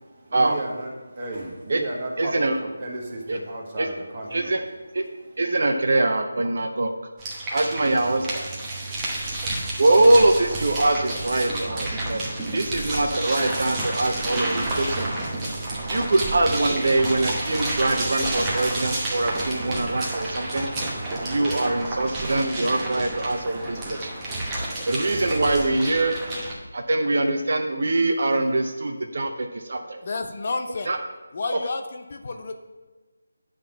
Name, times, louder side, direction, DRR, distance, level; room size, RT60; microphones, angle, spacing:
voice 1, 0.0-4.6 5.2-5.3, right 2 dB, 30° right, -2 dB, 1.5 m, -34 dB
voice 2, 2.2-2.5 3.3-3.4 3.8-3.9 4.3-4.6 4.9-5.0 5.4-6.9 7.5-8.6 9.8-12.2 12.5-15.1 15.9-20.7 21.2-24.1 24.9-26.2 26.7-30.0 30.9-31.0 31.5-31.6, right 2 dB, 55° right, 4 dB, 0.7 m, -23 dB
sound 1, 7.2-26.5, right 2 dB, 10° right, 0.9 m, -30 dB
voice 3, 30.0-30.9 31.3-32.5, left 3 dB, 40° left, 5 dB, 0.6 m, -30 dB
9.0 x 3.7 x 5.9 m, 1.2 s
figure-of-eight pair, 170°, 0 cm